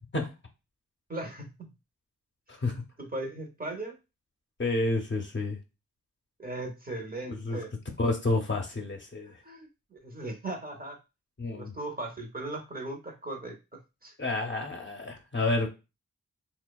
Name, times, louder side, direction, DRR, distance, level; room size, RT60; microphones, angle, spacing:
voice 1, 1.1-1.5 3.0-4.0 6.4-7.7 9.4-11.0 11.5-13.6 14.0-14.1, right 2 dB, 30° right, 2 dB, 0.6 m, -38 dB
voice 2, 4.6-5.6 7.3-7.6 8.0-9.3 11.4-11.7 14.2-15.7, left 2 dB, 40° left, 2 dB, 0.6 m, -29 dB
2.7 x 2.0 x 2.2 m, 0.28 s
wide cardioid pair, 65°, 31 cm